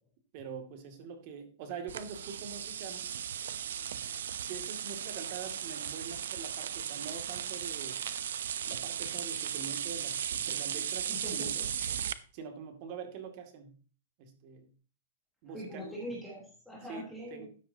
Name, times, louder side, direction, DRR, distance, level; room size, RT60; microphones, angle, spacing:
voice 1, 0.3-3.1 4.4-8.0 8.7-11.5 12.3-13.7 14.2-14.7 15.4-16.1 16.9-17.0 17.3-17.5, right 6 dB, 40° right, 5 dB, 2.5 m, -44 dB
sound 1, 1.9-12.1, right 9 dB, 75° right, 0.8 m, -36 dB
voice 2, 11.1-12.0 15.4-17.5, equal, ahead, -6 dB, 3.6 m, -43 dB
13.0 x 9.4 x 2.9 m, 0.38 s
hypercardioid pair, 160°, 0 cm